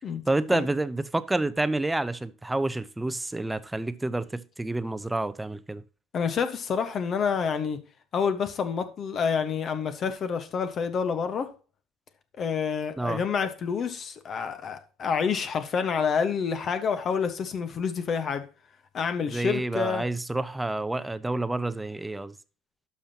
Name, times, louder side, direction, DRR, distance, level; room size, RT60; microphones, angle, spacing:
voice 1, 0.3-5.8 13.0-13.2 19.3-22.3, right 2 dB, 10° right, 0.7 m, -29 dB
voice 2, 6.1-7.8 8.1-11.5 12.4-18.4 18.9-20.0, left 6 dB, 45° left, 1.2 m, -28 dB
11.5 x 5.6 x 2.9 m
hypercardioid pair, 65°, 0 cm